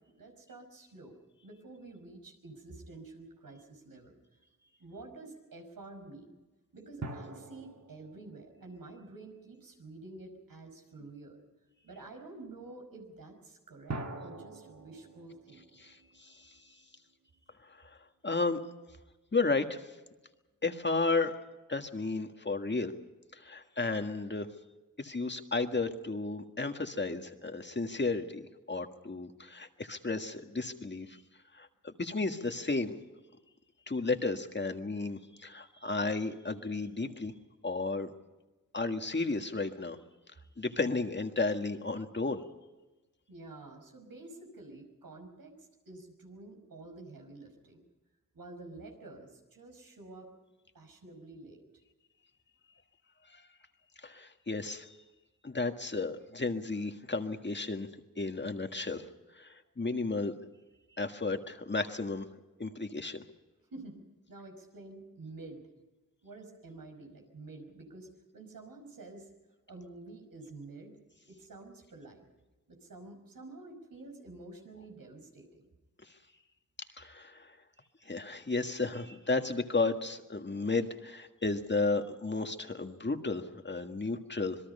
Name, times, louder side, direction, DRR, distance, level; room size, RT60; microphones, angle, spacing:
voice 1, 0.1-1.2 1.4-4.2 4.8-6.4 6.7-11.4 11.8-16.8 43.3-47.8 48.3-50.3 50.7-51.6 63.7-64.0 64.3-65.6 66.2-69.3 69.7-70.9 71.3-72.3 72.7-75.7, right 2 dB, 85° right, 3 dB, 5.5 m, -49 dB
sound 1, 2.6-3.3 7.0-9.8 13.9-17.1, right 2 dB, 50° right, 2.0 m, -45 dB
voice 2, 15.8-16.3 17.7-17.8 18.2-18.6 19.3-19.8 20.6-21.4 21.7-22.9 23.3-24.5 25.0-28.4 28.7-31.2 31.5-32.9 33.9-37.3 37.6-38.1 38.7-40.0 40.6-42.4 53.3-53.4 54.0-54.9 55.4-57.9 58.2-59.1 59.4-60.3 61.0-62.3 62.6-63.2 77.0-77.5 78.1-84.6, left 3 dB, 30° left, 6 dB, 1.7 m, -33 dB
26.5 x 21.5 x 5.5 m, 1.1 s
wide cardioid pair, 90°, 34 cm